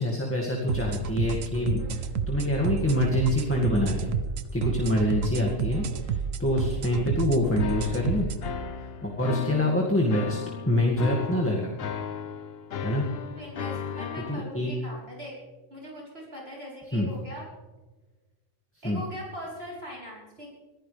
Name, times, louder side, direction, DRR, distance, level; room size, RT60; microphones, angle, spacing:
voice 1, 0.0-4.1 4.5-8.3 9.0-10.4 10.7-11.7 12.8-13.0 14.3-14.7 16.9-17.1 18.8-19.0, left 1 dB, 10° left, -3 dB, 2.0 m, -26 dB
sound 1, 0.7-8.4, right 6 dB, 85° right, 1.3 m, -30 dB
sound 2, 7.6-14.4, left 7 dB, 55° left, 1.0 m, -36 dB
voice 2, 13.4-15.3 15.7-17.4 18.8-20.5, equal, 50° right, -4 dB, 4.3 m, -41 dB
24.5 x 15.5 x 3.4 m, 1.2 s
omnidirectional pair, 1.3 m